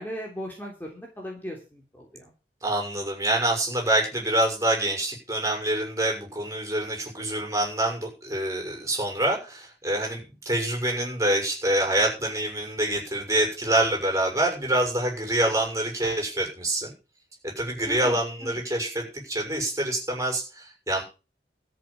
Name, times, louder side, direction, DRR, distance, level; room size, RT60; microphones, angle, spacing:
voice 1, 0.0-2.3 17.9-18.2 18.4-18.6, equal, 10° left, -1 dB, 3.5 m, -38 dB
voice 2, 2.6-16.9 17.6-21.0, right 1 dB, 20° right, 1 dB, 6.6 m, -26 dB
13.5 x 7.0 x 8.6 m, 0.33 s
head